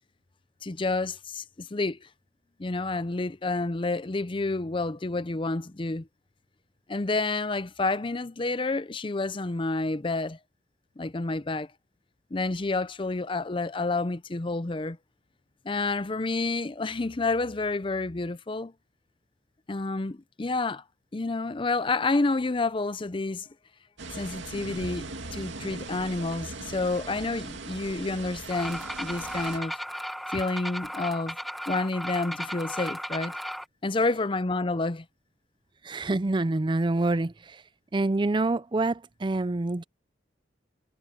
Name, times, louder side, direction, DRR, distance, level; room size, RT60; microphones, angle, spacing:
voice 1, 0.6-2.1 2.6-6.1 6.9-10.4 11.0-11.7 12.3-15.0 15.6-18.7 19.7-20.8 21.1-23.5 24.1-29.7 30.3-31.4 31.7-33.3 33.8-35.1, left 3 dB, 25° left, 0.5 m, -29 dB
sound 1, 24.0-29.6, right 3 dB, 85° right, 2.5 m, -39 dB
sound 2, 28.5-33.6, equal, ahead, 1.5 m, -35 dB
voice 2, 35.8-37.6 37.9-39.8, right 2 dB, 25° right, 0.5 m, -26 dB
head